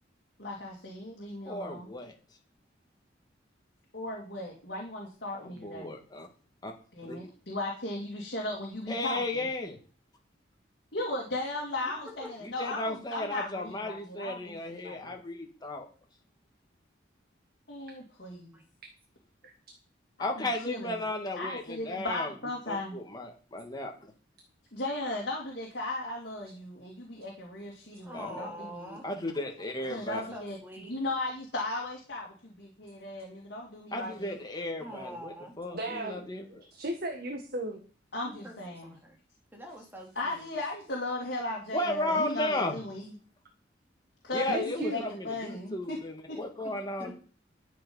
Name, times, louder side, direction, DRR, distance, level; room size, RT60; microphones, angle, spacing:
voice 1, 0.4-1.9 3.9-5.9 6.9-9.4 10.9-15.2 17.7-18.6 20.2-21.0 21.4-22.9 24.7-29.0 29.9-30.6 30.9-34.4 38.1-38.9 40.1-43.1 44.2-46.0 46.3-46.4, left 2 dB, 60° left, -2 dB, 2.9 m, -37 dB
voice 2, 1.5-2.1 5.4-6.3 6.6-6.7 7.0-7.2 8.9-9.8 12.4-15.9 20.2-22.3 22.7-23.9 28.1-28.7 29.0-30.2 33.9-36.6 41.7-42.8 44.3-47.1, left 1 dB, 20° left, 2 dB, 1.8 m, -34 dB
voice 3, 28.0-29.0 30.1-31.0 34.8-35.5 38.2-39.2 39.5-40.5 46.6-46.7 47.0-47.1, equal, 10° right, 1 dB, 2.8 m, -45 dB
voice 4, 35.7-37.8 44.5-45.0, right 1 dB, 55° right, 4 dB, 1.6 m, -36 dB
12.0 x 7.5 x 5.5 m, 0.39 s
head